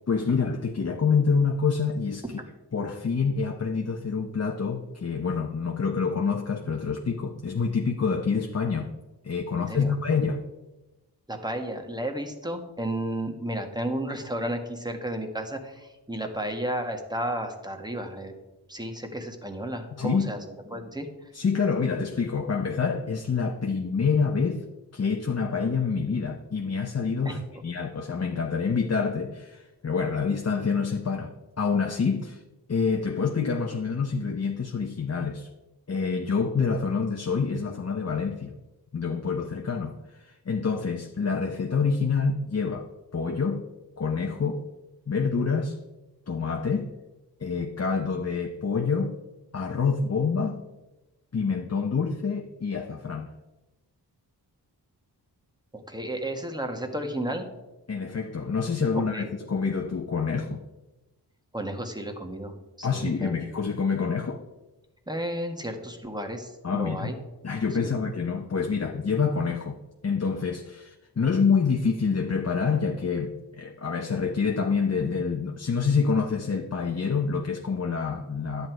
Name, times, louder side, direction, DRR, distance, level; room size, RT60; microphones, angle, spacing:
voice 1, 0.1-2.2 2.7-9.0 9.2-10.5 20.0-20.3 21.3-24.6 24.9-32.4 32.7-35.5 35.9-38.5 38.9-42.9 43.1-43.6 44.0-44.7 45.1-45.8 46.3-46.9 47.4-49.2 49.5-50.6 51.3-53.3 57.9-60.6 62.8-64.4 66.6-67.1 67.4-69.8 70.0-78.7, left 5 dB, 40° left, 3 dB, 0.9 m, -27 dB
voice 2, 9.5-9.9 11.3-18.3 18.7-20.4 20.7-21.1 27.2-27.4 55.7-57.4 58.9-59.3 61.5-63.3 65.1-67.2 67.8-68.0, right 1 dB, 10° right, 3 dB, 1.6 m, -33 dB
10.5 x 8.1 x 4.6 m, 1.1 s
cardioid pair, 65°, 41 cm